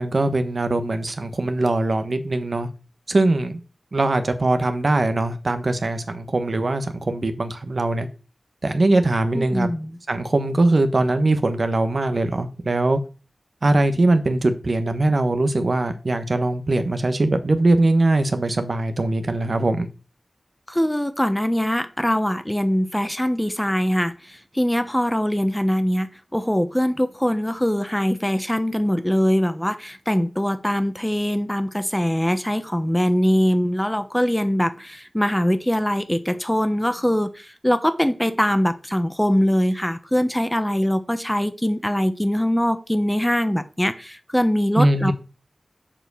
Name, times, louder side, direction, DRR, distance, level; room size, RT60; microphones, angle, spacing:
voice 1, 0.0-2.7 3.1-3.6 3.9-8.1 8.6-9.7 10.1-13.0 13.6-19.9 44.8-45.1, right 2 dB, 60° right, 1.2 m, -21 dB
voice 2, 9.3-10.0 20.7-26.1 26.3-45.1, equal, 10° left, 1.1 m, -22 dB
7.6 x 4.5 x 7.0 m
cardioid pair, 45°, 0 cm